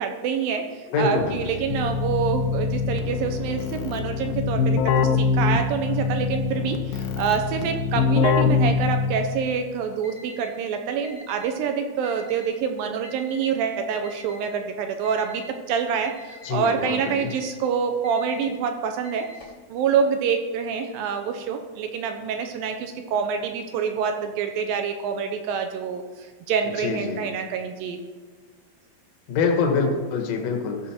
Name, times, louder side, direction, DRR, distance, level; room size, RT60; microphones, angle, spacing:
voice 1, 0.0-19.3 19.7-28.0, right 6 dB, 80° right, 6 dB, 2.3 m, -26 dB
voice 2, 0.9-1.3 16.4-17.3 26.8-27.2 29.3-30.8, left 4 dB, 60° left, 2 dB, 1.7 m, -24 dB
Keyboard (musical), 1.2-9.5, left 5 dB, 80° left, 2.1 m, -24 dB
Alarm, 10.0-10.5 11.0-11.5 12.0-12.5 13.0-13.5 14.0-14.5 15.0-15.5 16.0-16.5 17.0-17.5 18.0-18.5 19.0-19.6, left 3 dB, 5° right, 0.8 m, -45 dB
14.0 x 6.2 x 4.3 m, 1.4 s
omnidirectional pair, 4.6 m